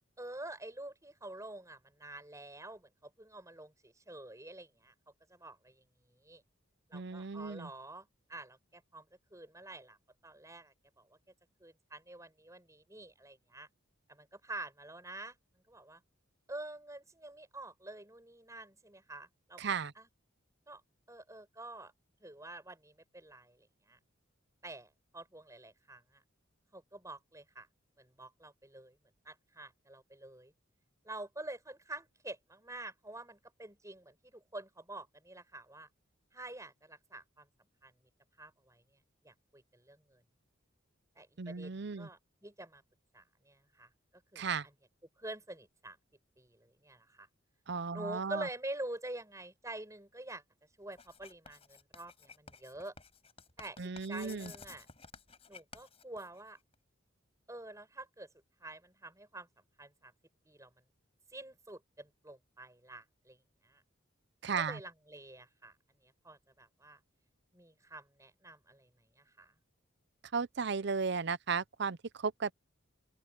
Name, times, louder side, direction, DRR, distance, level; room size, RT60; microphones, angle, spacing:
voice 1, 0.2-4.9 5.3-6.4 6.9-9.1 9.3-10.0 10.2-11.2 11.6-13.7 14.1-15.4 15.7-16.0 16.5-20.1 20.7-20.8 21.1-21.9 22.2-24.0 24.6-26.2 26.7-27.7 28.0-29.0 29.2-30.5 31.0-35.9 36.3-37.5 37.8-37.9 38.4-38.8 39.2-40.2 41.2-42.8 43.1-43.9 44.3-44.5 45.2-46.0 46.4-47.3 47.9-50.4 50.8-52.9 53.6-54.9 55.5-56.6 57.5-58.3 58.6-59.5 59.8-60.1 60.5-60.7 61.3-63.4 63.6-63.8 64.5-65.8 66.0-67.0 67.5-68.9 69.1-69.5, right 2 dB, 15° right, 8.0 m, -47 dB
voice 2, 6.9-7.7 19.6-19.9 41.4-42.1 44.4-44.7 47.7-48.5 53.8-54.5 64.4-64.8 70.3-72.5, right 5 dB, 60° right, 0.6 m, -35 dB
Writing, 50.9-56.7, left 5 dB, 30° left, 5.0 m, -54 dB
open air
head